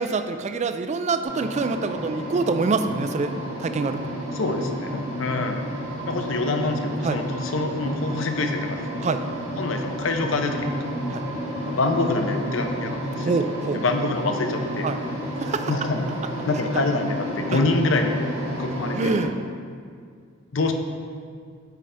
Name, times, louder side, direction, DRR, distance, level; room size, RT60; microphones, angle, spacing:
voice 1, 0.0-3.3 3.6-4.0 7.0-7.2 9.0-9.2 11.1-11.2 13.2-13.8 14.8-15.0 15.4-15.7 16.7-16.8 17.5-17.6 19.0-19.3, right 4 dB, 35° right, 9 dB, 0.3 m, -25 dB
sound 1, 1.2-19.2, equal, 80° right, 1.8 m, -31 dB
voice 2, 4.3-5.7 6.1-9.0 9.6-10.9 11.6-13.3 13.6-14.9 15.7-16.0 16.5-18.3 18.6-19.1 20.5-20.7, left 3 dB, 70° left, 5 dB, 0.7 m, -26 dB
9.2 x 5.0 x 3.4 m, 2.1 s
head